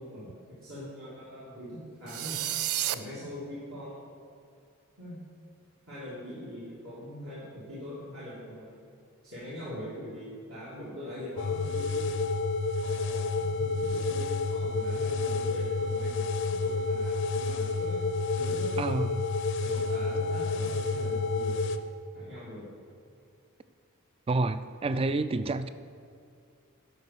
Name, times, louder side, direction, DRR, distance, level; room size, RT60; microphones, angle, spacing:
voice 1, 0.0-2.4 2.9-4.1 5.0-5.2 5.9-8.8 9.2-12.2 12.8-18.0 18.3-18.8 19.6-21.6 22.1-22.7, equal, 65° right, -11 dB, 2.9 m, -42 dB
sound 1, 2.1-2.9, right 12 dB, 85° right, 0.4 m, -30 dB
sound 2, 11.4-21.8, left 3 dB, 55° left, 0.5 m, -29 dB
voice 2, 18.8-19.2 24.3-25.7, right 2 dB, 25° right, 12 dB, 0.3 m, -28 dB
11.0 x 5.4 x 6.7 m, 2.4 s
head